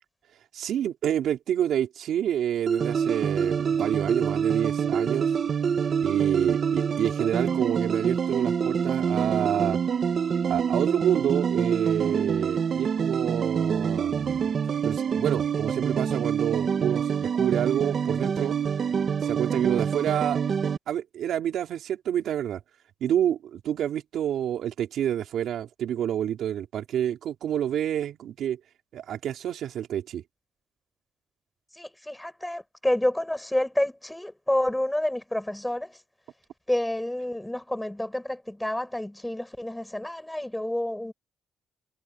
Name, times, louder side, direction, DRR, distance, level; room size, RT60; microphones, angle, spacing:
voice 1, 0.5-5.3 6.0-9.8 10.4-14.5 14.8-18.6 19.2-20.4 20.9-22.6 23.0-28.6 28.9-30.2, right 10 dB, 65° right, 3.8 m, -28 dB
sound 1, 2.7-20.8, right 7 dB, 40° right, 1.0 m, -26 dB
voice 2, 31.8-36.0 36.7-41.1, left 1 dB, 5° left, 7.2 m, -29 dB
cardioid pair, 150°, 0 cm